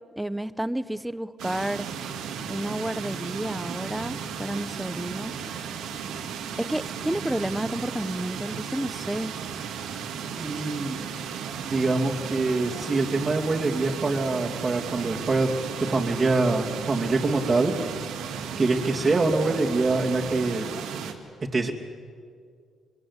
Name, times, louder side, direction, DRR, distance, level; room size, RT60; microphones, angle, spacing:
voice 1, 0.2-1.9 2.5-5.3 6.6-9.3, right 1 dB, 5° right, 15 dB, 0.8 m, -30 dB
sound 1, 1.4-21.1, right 7 dB, 85° right, 2.2 m, -35 dB
voice 2, 10.4-11.0 11.6-15.5 15.8-17.7 18.6-20.6 21.5-21.7, right 3 dB, 30° right, -2 dB, 2.6 m, -24 dB
25.5 x 23.0 x 8.3 m, 2.1 s
cardioid pair, 90°, 0 cm